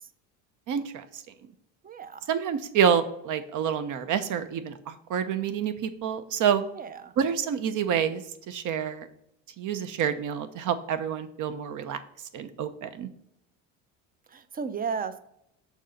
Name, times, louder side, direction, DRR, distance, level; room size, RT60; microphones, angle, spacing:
voice 1, 0.7-1.2 2.3-6.6 7.2-9.1 9.6-12.0 12.3-13.1, right 8 dB, 50° right, 10 dB, 0.9 m, -28 dB
voice 2, 1.8-2.3 6.7-7.1 14.3-15.2, right 5 dB, 25° right, 12 dB, 0.6 m, -34 dB
6.5 x 4.1 x 5.1 m, 0.76 s
supercardioid pair, 95°, 39 cm